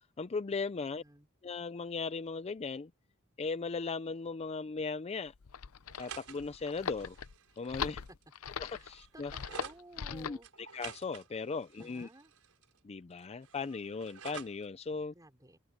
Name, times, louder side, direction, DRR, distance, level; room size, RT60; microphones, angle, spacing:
voice 1, 0.2-1.0 1.4-2.9 3.4-5.3 6.0-7.2 7.6-8.0 8.6-9.3 10.1-10.4 10.7-12.1 12.8-15.1, left 4 dB, 30° left, 0.4 m, -37 dB
voice 2, 0.8-1.3 8.1-8.2 8.7-10.5 11.8-12.3 15.1-15.6, right 1 dB, 15° right, 5.5 m, -55 dB
sound 1, 5.3-10.4, left 7 dB, 75° left, 0.6 m, -40 dB
sound 2, 5.9-9.8 10.4-12.8 13.1-14.7, right 7 dB, 90° right, 4.8 m, -50 dB
head